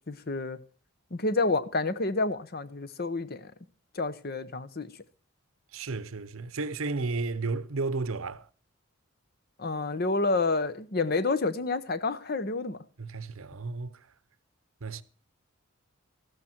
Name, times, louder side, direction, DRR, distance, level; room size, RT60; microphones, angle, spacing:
voice 1, 0.1-0.6 1.1-3.5 3.9-4.9 9.6-12.8, left 3 dB, 45° left, 0.8 m, -29 dB
voice 2, 5.7-8.4 13.0-14.0 14.8-15.0, right 3 dB, 70° right, 0.8 m, -33 dB
14.0 x 12.0 x 4.4 m
head